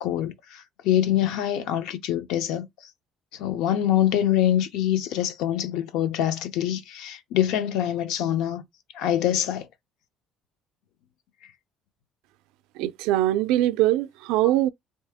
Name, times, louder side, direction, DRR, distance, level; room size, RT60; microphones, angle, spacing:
voice 1, 0.0-2.7 3.3-8.6 8.9-9.7, left 11 dB, 70° left, 0.6 m, -25 dB
voice 2, 12.8-14.7, right 14 dB, 90° right, 0.3 m, -22 dB
3.2 x 2.7 x 3.5 m
cardioid pair, 170°, 0 cm